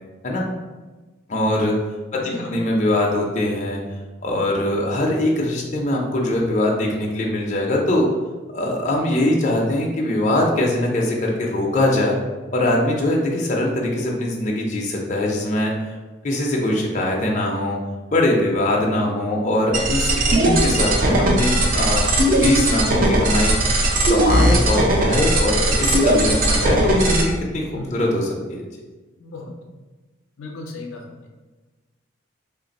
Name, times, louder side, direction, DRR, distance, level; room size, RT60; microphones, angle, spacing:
voice 1, 1.3-1.7 2.1-3.8 4.2-8.1 8.5-12.2 12.5-15.7 16.2-17.8 18.1-22.0 22.4-23.5 24.1-27.6 27.9-28.6, left 1 dB, 35° left, -2 dB, 0.4 m, -22 dB
voice 2, 2.1-2.5 27.7-28.0 29.2-29.5 30.4-31.3, left 2 dB, 80° left, 2 dB, 0.6 m, -35 dB
sound 1, 19.7-27.2, right 1 dB, 40° right, 0.5 m, -18 dB
3.2 x 2.5 x 4.0 m, 1.2 s
head